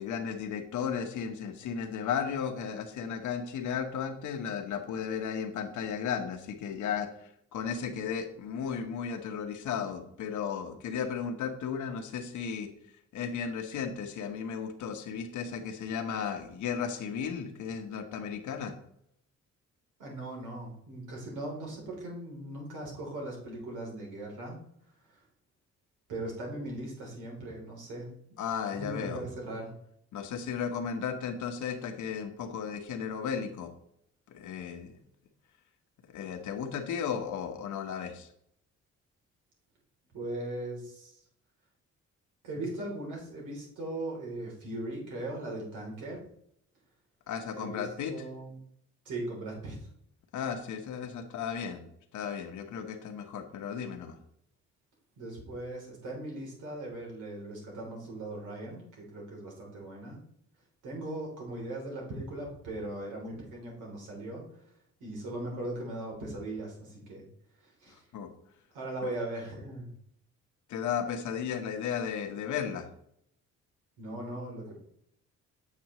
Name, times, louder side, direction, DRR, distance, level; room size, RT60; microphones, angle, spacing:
voice 1, 0.0-12.7 13.1-18.7 28.4-29.3 30.1-33.7 34.3-35.0 36.1-38.3 47.3-48.1 50.3-51.9 52.1-54.2 68.1-68.3 70.7-72.9, left 7 dB, 75° left, 5 dB, 1.2 m, -35 dB
voice 2, 20.0-24.6 25.1-25.2 26.1-28.5 28.7-29.7 40.1-41.2 42.4-46.2 47.5-48.6 49.0-49.9 55.2-60.2 60.8-64.5 65.0-67.3 67.6-68.1 68.7-69.9 74.0-74.8, right 1 dB, 85° right, -2 dB, 3.3 m, -39 dB
8.6 x 6.0 x 3.1 m, 0.70 s
cardioid pair, 90°, 30 cm